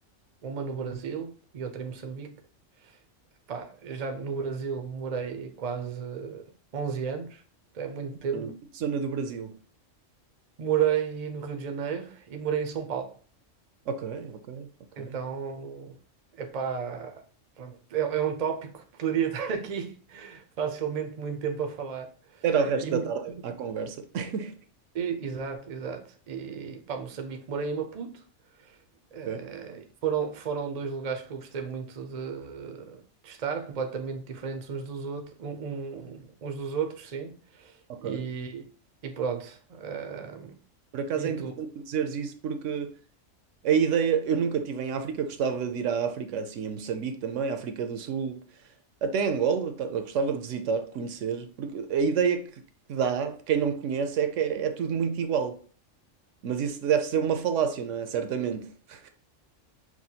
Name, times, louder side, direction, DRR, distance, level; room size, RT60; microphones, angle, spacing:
voice 1, 0.4-2.4 2.8-3.0 3.5-6.4 6.7-7.4 7.7-8.5 10.6-13.1 15.0-16.0 16.3-17.2 17.6-22.4 22.8-23.0 24.9-28.2 28.6-28.8 29.1-38.6 39.0-40.5 41.1-41.5, right 7 dB, 45° right, 0.5 m, -33 dB
voice 2, 8.8-9.6 13.9-14.7 15.0-15.2 22.4-24.6 29.3-29.4 37.9-38.3 40.9-42.9 43.6-48.4 49.0-52.5 52.9-55.6 56.4-59.1, right 6 dB, 75° right, 0.9 m, -28 dB
6.1 x 2.2 x 2.8 m
omnidirectional pair, 1.3 m